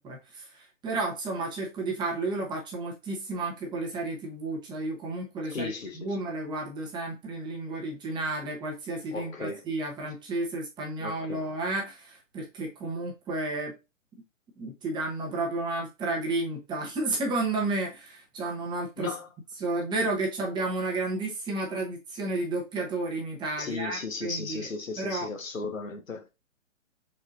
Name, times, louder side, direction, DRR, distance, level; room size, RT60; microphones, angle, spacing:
voice 1, 0.0-13.8 14.6-19.1 19.6-24.7 25.0-25.3, right 2 dB, 10° right, 0.9 m, -32 dB
voice 2, 5.4-6.2 9.1-9.6 11.0-11.5 19.0-19.3 23.6-26.3, left 4 dB, 80° left, 1.2 m, -36 dB
4.5 x 4.2 x 2.7 m
figure-of-eight pair, 130°, 39 cm